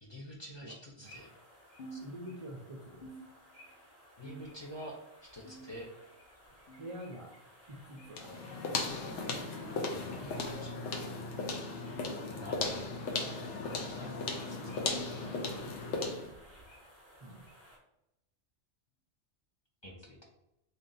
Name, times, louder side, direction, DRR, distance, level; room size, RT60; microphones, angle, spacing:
voice 1, 0.0-1.3 1.9-2.0 4.2-4.9 5.3-5.9 10.1-10.7 12.4-12.8 13.9-14.9 19.8-20.2, equal, 30° left, -3 dB, 0.6 m, -47 dB
voice 2, 0.6-1.2 2.0-3.1 6.8-7.3 7.7-8.5 9.8-10.3 16.8-16.9 17.2-17.5, right 1 dB, 50° right, -1 dB, 0.4 m, -47 dB
sound 1, 1.0-17.8, equal, 15° left, 1.2 m, -57 dB
sound 2, 1.8-2.6 3.0-3.8 4.2-4.8 5.5-6.1 6.7-7.1 7.9-8.1 9.1-9.3 10.3-10.5 11.6-11.7 12.8-13.0 14.0-14.2 15.2-15.3 16.4-16.5, right 2 dB, 60° left, 0.9 m, -52 dB
sound 3, 8.1-16.3, left 3 dB, 85° left, 1.0 m, -36 dB
3.4 x 2.6 x 3.9 m, 0.87 s
omnidirectional pair, 1.2 m